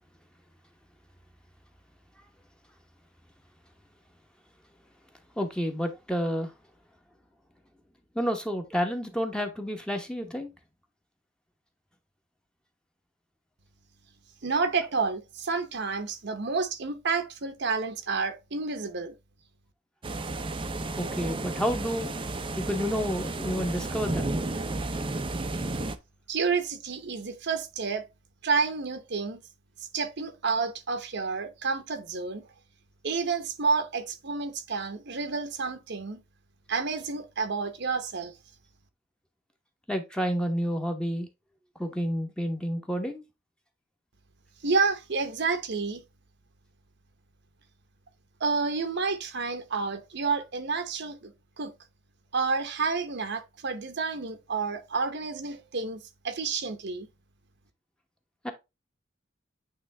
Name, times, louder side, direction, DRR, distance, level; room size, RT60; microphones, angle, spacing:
voice 1, 5.4-6.5 8.1-10.5 21.0-22.1 22.6-24.4 39.9-41.3 41.8-43.2 58.4-58.5, equal, 5° left, 1.0 m, -30 dB
voice 2, 14.4-19.1 26.3-28.0 28.4-29.4 29.9-32.5 33.0-36.2 36.7-38.3 44.6-46.0 48.4-51.7 52.3-57.1, right 4 dB, 60° right, 0.9 m, -30 dB
sound 1, 20.0-26.0, right 2 dB, 25° right, 0.6 m, -32 dB
8.7 x 3.3 x 3.3 m
head